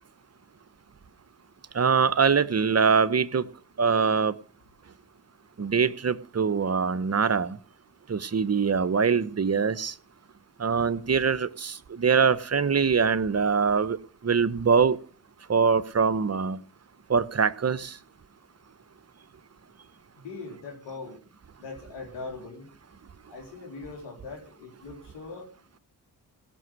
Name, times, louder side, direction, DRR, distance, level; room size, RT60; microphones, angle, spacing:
voice 1, 1.7-3.4 3.8-4.3 5.6-7.6 8.1-9.9 10.6-14.0 14.2-15.0 15.5-16.6 17.1-17.9, right 6 dB, 35° right, 15 dB, 1.1 m, -23 dB
voice 2, 20.2-21.2 21.6-22.7 23.3-25.5, left 3 dB, 85° left, 1 dB, 4.2 m, -41 dB
16.5 x 6.2 x 9.4 m, 0.43 s
supercardioid pair, 45°, 41 cm